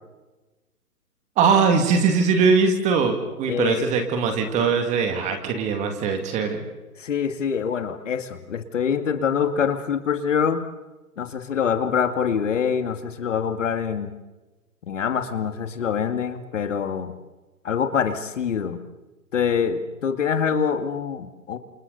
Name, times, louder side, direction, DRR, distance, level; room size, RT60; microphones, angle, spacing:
voice 1, 1.4-6.7, right 5 dB, 15° right, 5 dB, 2.2 m, -21 dB
voice 2, 3.5-3.9 7.0-10.6 11.2-14.2 14.9-17.2 17.6-18.8 19.3-21.6, left 7 dB, 55° left, 8 dB, 2.2 m, -25 dB
29.0 x 28.0 x 4.1 m, 1.1 s
hypercardioid pair, 145°, 46 cm